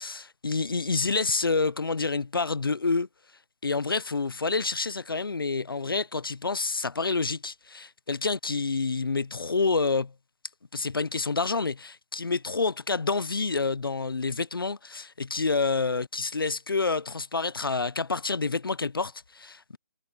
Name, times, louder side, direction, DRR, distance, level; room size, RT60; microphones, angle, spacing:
voice 1, 0.0-3.1 3.6-10.1 10.7-19.8, left 4 dB, 85° left, 0.9 m, -28 dB
figure-of-eight pair, 160°, 11 cm